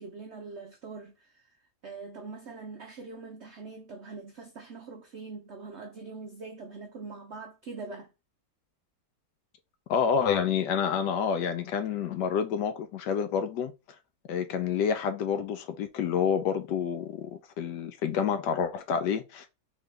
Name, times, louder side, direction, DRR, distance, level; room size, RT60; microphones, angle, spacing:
voice 1, 0.0-1.6 1.8-8.1, right 4 dB, 75° right, 0.6 m, -43 dB
voice 2, 9.9-13.7 14.3-19.5, left 7 dB, 75° left, 1.1 m, -28 dB
3.7 x 3.0 x 3.3 m
omnidirectional pair, 2.0 m